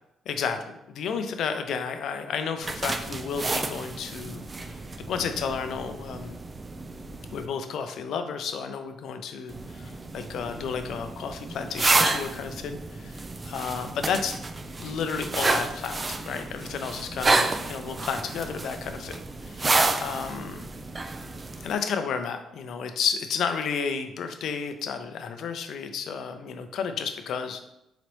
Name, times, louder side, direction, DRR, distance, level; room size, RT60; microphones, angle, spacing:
voice 1, 0.3-6.4 7.3-14.4 14.8-20.7 21.6-27.6, left 6 dB, 75° left, 7 dB, 0.4 m, -32 dB
sound 1, 2.6-7.5 9.5-21.7, right 3 dB, 30° right, 0.3 m, -30 dB
3.9 x 3.0 x 3.1 m, 0.85 s
cardioid pair, 90°, 0 cm